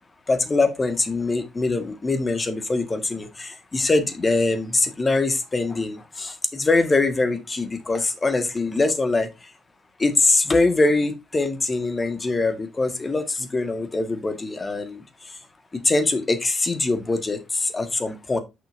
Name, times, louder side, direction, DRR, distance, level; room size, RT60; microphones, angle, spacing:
voice 1, 0.3-9.3 10.0-15.4 15.7-18.4, left 3 dB, 30° left, 8 dB, 1.7 m, -23 dB
8.3 x 6.1 x 2.7 m, 0.23 s
hypercardioid pair, 45°, 0 cm